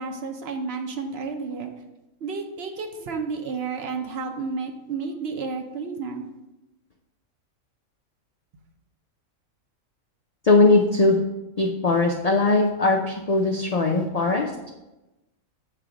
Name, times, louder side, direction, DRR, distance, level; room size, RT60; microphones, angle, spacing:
voice 1, 0.0-1.7 2.2-6.3, right 4 dB, 55° right, 4 dB, 0.8 m, -31 dB
voice 2, 10.4-11.2 11.6-14.5, left 3 dB, 85° left, 2 dB, 0.3 m, -20 dB
7.7 x 3.3 x 4.9 m, 1.0 s
omnidirectional pair, 1.4 m